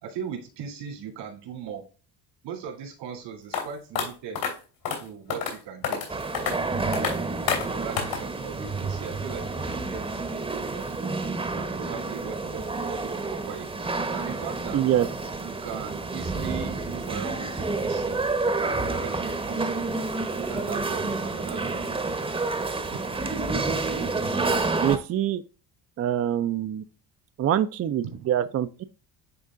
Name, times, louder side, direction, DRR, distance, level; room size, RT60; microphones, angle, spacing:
voice 1, 0.0-1.8 2.4-4.4 5.0-6.2 7.3-11.2 11.5-14.8 15.4-18.2 18.9-19.8 20.3-22.1 22.9-23.0 23.3-23.4, right 7 dB, 85° right, 2.9 m, -39 dB
sound 1, 3.5-3.6 3.9-4.0 4.3-4.5 4.8-5.0 5.3-5.5 5.8-6.1 6.3-6.5 6.9-7.1 7.5-7.6 8.0-8.2, left 7 dB, 80° left, 3.1 m, -27 dB
sound 2, 6.1-25.0, right 3 dB, 15° right, 0.8 m, -29 dB
voice 2, 14.7-15.1 24.8-25.4 26.0-26.8 27.4-28.8, right 11 dB, 35° right, 0.4 m, -25 dB
10.5 x 3.6 x 2.4 m
cardioid pair, 105°, 42 cm